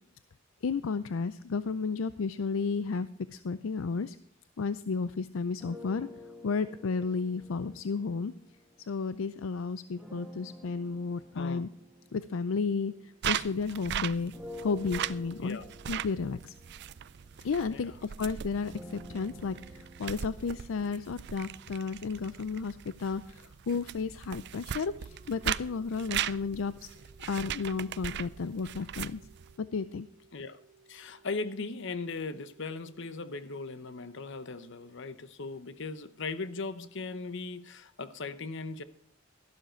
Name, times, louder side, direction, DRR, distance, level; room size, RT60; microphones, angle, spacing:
voice 1, 0.6-4.2 4.6-6.1 6.4-8.3 8.9-11.7 12.1-14.3 14.6-15.6 15.9-16.5 17.4-26.9 27.2-29.2 29.6-30.1, left 4 dB, 80° left, 14 dB, 0.5 m, -33 dB
sound 1, 5.6-9.2 10.0-13.7 14.3-22.3, left 1 dB, 5° right, 1.8 m, -50 dB
voice 2, 11.3-11.7 15.4-15.7 17.7-18.0 30.3-30.6 30.9-38.8, left 3 dB, 65° left, 14 dB, 0.9 m, -38 dB
sound 2, 13.2-29.5, right 10 dB, 60° right, 0.4 m, -39 dB
sound 3, 24.9-35.6, right 2 dB, 25° right, 1.9 m, -63 dB
13.0 x 12.0 x 4.4 m, 0.64 s
head